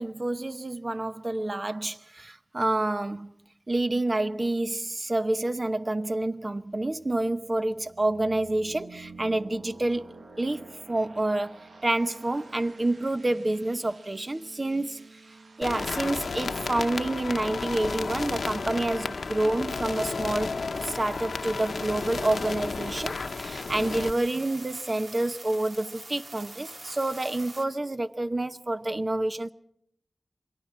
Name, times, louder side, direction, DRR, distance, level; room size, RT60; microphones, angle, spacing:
voice 1, 0.0-3.3 3.7-15.1 15.6-29.5, right 2 dB, 35° right, 0.8 m, -28 dB
sound 1, 6.7-19.3, right 3 dB, 85° right, 1.5 m, -50 dB
sound 2, 15.6-24.1, left 4 dB, 85° left, 0.8 m, -32 dB
sound 3, 20.7-27.7, right 2 dB, 65° right, 2.5 m, -46 dB
27.5 x 22.0 x 4.3 m
wide cardioid pair, 80°, 0 cm